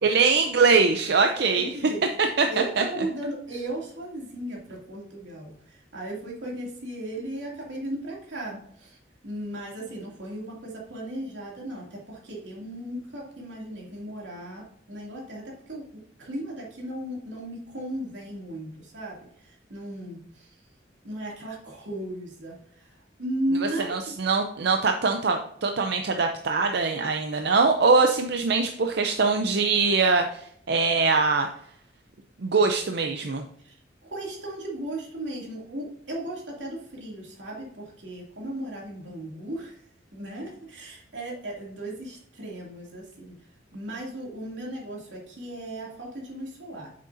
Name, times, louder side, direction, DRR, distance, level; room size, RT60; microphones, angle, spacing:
voice 1, 0.0-1.8 2.2-3.0 23.5-31.5 32.4-33.4, right 4 dB, 65° right, 4 dB, 0.6 m, -23 dB
voice 2, 1.4-2.0 2.5-9.0 9.2-19.2 19.4-20.5 21.0-22.9 23.2-24.2 33.6-33.7 34.0-39.8 40.1-43.3 43.7-46.9, right 1 dB, 90° right, -2 dB, 2.7 m, -36 dB
8.7 x 6.5 x 2.7 m, 0.66 s
head